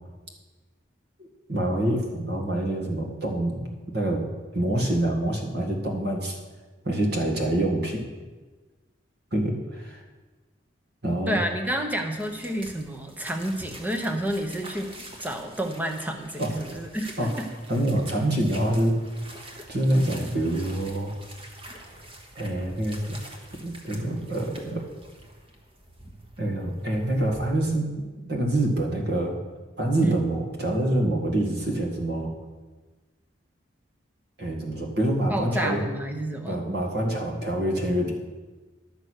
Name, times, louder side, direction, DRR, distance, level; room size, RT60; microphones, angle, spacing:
voice 1, 1.5-4.3 4.5-6.4 6.8-8.0 9.3-10.0 11.0-11.4 16.4-16.5 17.2-17.3 17.7-19.0 19.7-21.1 22.4-23.2 23.6-24.9 26.4-27.9 28.2-29.4 29.8-32.3 34.4-35.9 36.4-38.1, right 1 dB, 55° right, 1 dB, 1.8 m, -26 dB
voice 2, 11.3-14.9 15.2-17.5 30.0-30.3 35.3-36.6, right 1 dB, 10° right, 4 dB, 0.9 m, -30 dB
sound 1, 12.1-27.5, right 1 dB, 25° right, 1.3 m, -45 dB
11.5 x 6.7 x 6.4 m, 1.3 s
head